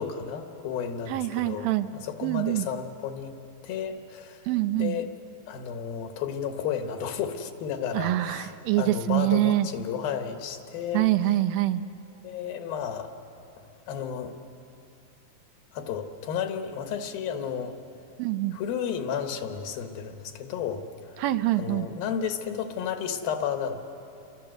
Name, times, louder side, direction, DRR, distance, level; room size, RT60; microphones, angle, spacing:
voice 1, 0.0-1.7 1.9-3.3 3.6-4.5 4.8-5.1 5.5-11.1 12.2-13.1 13.6-14.4 15.7-17.8 18.5-21.2 21.6-23.8, left 7 dB, 85° left, 6 dB, 3.3 m, -32 dB
voice 2, 1.1-1.9 2.2-2.7 4.5-5.0 7.9-9.7 10.9-11.8 18.2-18.6 21.2-21.9, right 15 dB, 80° right, 10 dB, 2.5 m, -25 dB
28.5 x 24.0 x 7.9 m, 2.9 s
omnidirectional pair, 4.1 m